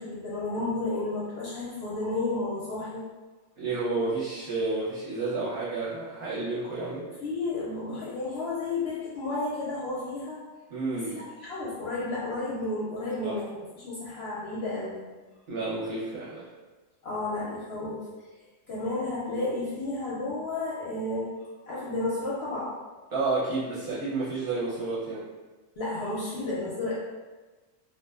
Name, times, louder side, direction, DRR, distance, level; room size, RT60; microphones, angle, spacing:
voice 1, 0.0-3.0 7.2-10.4 10.9-15.0 17.0-18.0 18.7-21.3 21.7-22.7 25.8-26.9, left 2 dB, 60° left, -7 dB, 0.7 m, -32 dB
voice 2, 3.6-7.1 10.7-11.2 13.2-13.4 15.5-16.4 23.1-25.3, right 3 dB, 50° right, -10 dB, 0.8 m, -30 dB
2.5 x 2.1 x 2.3 m, 1.3 s
omnidirectional pair, 1.4 m